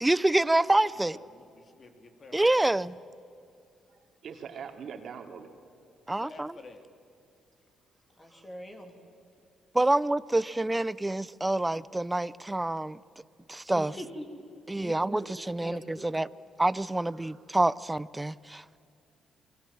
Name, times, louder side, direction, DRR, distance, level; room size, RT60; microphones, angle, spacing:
voice 1, 0.0-1.2 2.3-2.9 6.1-6.5 9.7-13.0 13.5-13.9 14.7-15.2 15.5-16.3 16.6-18.8, right 2 dB, 10° right, 0.6 m, -27 dB
voice 2, 0.9-2.8 6.1-6.8, left 3 dB, 40° left, 3.2 m, -51 dB
voice 3, 3.9-5.5 17.0-17.4, right 7 dB, 60° right, 2.7 m, -43 dB
voice 4, 8.2-8.9 13.7-14.4 14.8-15.3 15.6-15.8, equal, 20° left, 3.2 m, -42 dB
29.0 x 21.0 x 7.7 m
cardioid pair, 90°, 0 cm